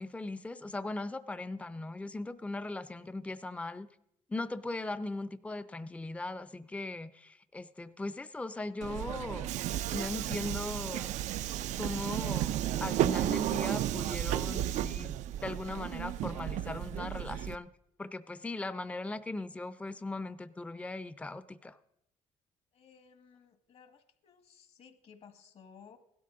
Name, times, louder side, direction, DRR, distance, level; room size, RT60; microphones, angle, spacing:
voice 1, 0.0-3.9 4.3-9.5 9.9-11.1 11.8-15.1 15.4-17.7 18.0-21.8, left 2 dB, 10° left, 13 dB, 0.5 m, -39 dB
Subway metro underground, 8.8-17.6, right 12 dB, 70° right, 0.4 m, -33 dB
voice 2, 22.7-26.0, left 6 dB, 55° left, 9 dB, 1.5 m, -57 dB
16.5 x 12.5 x 3.8 m, 0.79 s
cardioid pair, 100°, 13 cm